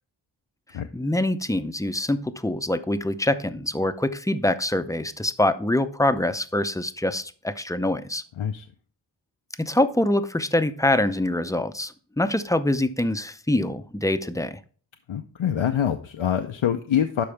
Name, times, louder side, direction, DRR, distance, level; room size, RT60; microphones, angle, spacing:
voice 1, 0.9-8.2 9.6-14.6, left 1 dB, 5° left, 0.5 m, -24 dB
voice 2, 15.1-17.2, left 9 dB, 80° left, 0.6 m, -25 dB
12.0 x 4.7 x 3.3 m
wide cardioid pair, 55°, 47 cm